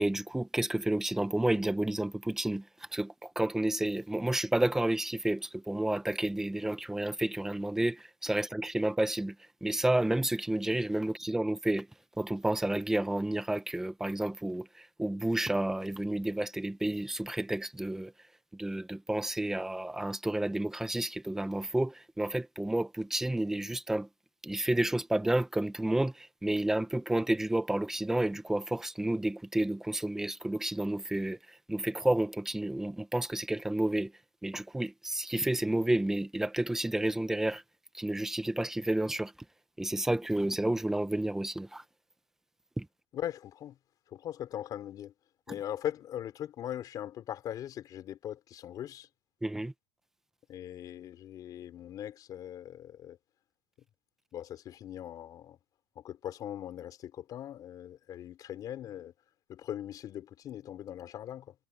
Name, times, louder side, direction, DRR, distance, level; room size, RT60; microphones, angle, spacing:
voice 1, 0.0-2.6 2.9-9.3 9.6-11.9 12.2-14.7 15.0-18.1 18.6-24.1 24.4-31.4 31.7-34.1 34.4-37.6 37.9-39.3 39.8-41.8 42.8-42.9 49.4-49.7, right 1 dB, 5° right, 1.0 m, -30 dB
voice 2, 43.1-43.8 44.1-45.1 45.5-49.1 50.5-53.2 54.3-55.6 56.0-59.1 59.5-61.5, left 11 dB, 35° left, 4.2 m, -40 dB
cardioid pair, 170°, 12 cm